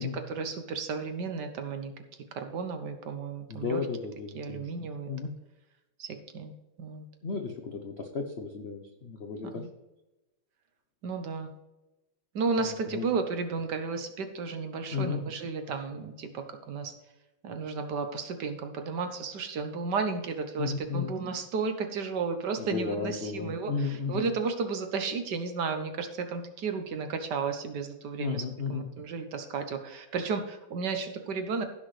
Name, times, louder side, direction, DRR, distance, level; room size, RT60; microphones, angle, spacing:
voice 1, 0.3-1.9 2.3-3.8 4.3-5.3 6.0-6.1 6.3-6.5 6.8-7.0 9.6-9.7 11.0-11.5 12.3-16.9 17.4-28.4 28.7-31.6, right 5 dB, 60° right, 7 dB, 1.4 m, -33 dB
voice 2, 3.5-4.6 5.1-5.3 7.2-9.7 12.6-13.1 14.9-15.2 20.6-21.1 22.6-24.3 28.2-28.9, left 5 dB, 80° left, 4 dB, 0.5 m, -34 dB
15.5 x 6.2 x 3.2 m, 1.0 s
omnidirectional pair, 2.3 m